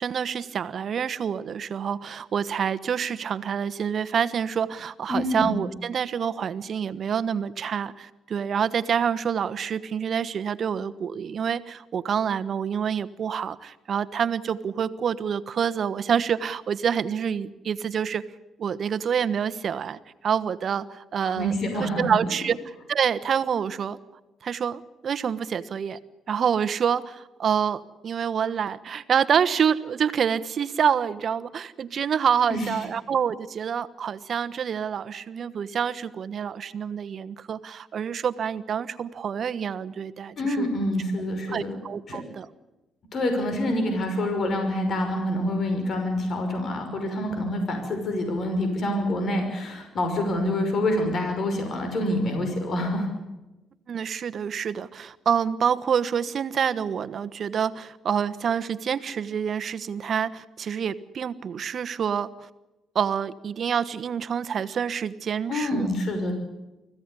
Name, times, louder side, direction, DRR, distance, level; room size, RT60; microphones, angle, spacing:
voice 1, 0.0-18.2 18.6-21.5 21.8-22.6 22.9-24.0 24.4-26.0 26.3-40.7 41.5-42.5 53.9-62.5 62.9-65.9, right 7 dB, 55° right, 13 dB, 1.2 m, -27 dB
voice 2, 5.1-5.6 21.2-22.1 32.5-32.7 40.4-41.8 42.1-42.2 43.1-53.1 65.5-66.3, left 1 dB, 55° left, 5 dB, 5.7 m, -26 dB
25.0 x 16.0 x 9.9 m, 1.0 s
cardioid pair, 90°, 0 cm